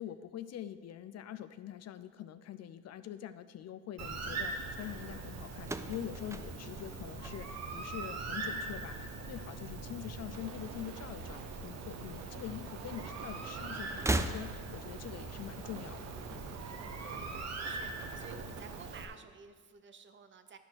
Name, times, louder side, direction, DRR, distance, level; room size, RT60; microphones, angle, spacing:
voice 1, 0.0-16.0 16.3-16.5, left 11 dB, 60° left, 11 dB, 0.5 m, -44 dB
Bird, 4.0-19.1, right 3 dB, 60° right, 1.2 m, -42 dB
sound 1, 5.6-7.9 8.2-8.8 9.9-10.9 11.2-11.3 12.4-12.5 13.9-14.9, right 2 dB, 10° right, 0.4 m, -37 dB
sound 2, 10.3-19.0, right 7 dB, 85° right, 0.7 m, -50 dB
voice 2, 17.0-20.6, right 5 dB, 40° right, 9 dB, 0.8 m, -52 dB
11.5 x 4.3 x 6.2 m, 1.5 s
cardioid pair, 90°, 30 cm